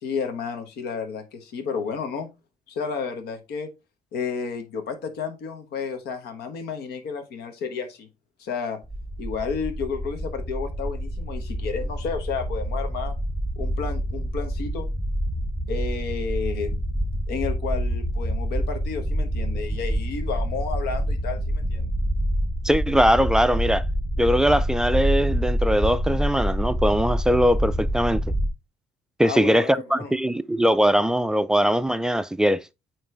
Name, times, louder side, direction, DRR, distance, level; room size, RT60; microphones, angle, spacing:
voice 1, 0.0-2.3 2.7-3.7 4.1-8.1 8.4-8.8 9.2-13.1 13.6-14.9 15.7-16.8 17.3-21.9 29.2-30.1, left 5 dB, 70° left, 1.3 m, -31 dB
sound 1, 8.8-28.5, equal, 10° left, 1.5 m, -27 dB
voice 2, 22.6-23.8 24.2-28.2 29.2-32.6, equal, 5° right, 0.3 m, -21 dB
8.9 x 3.2 x 3.3 m
cardioid pair, 110°, 17 cm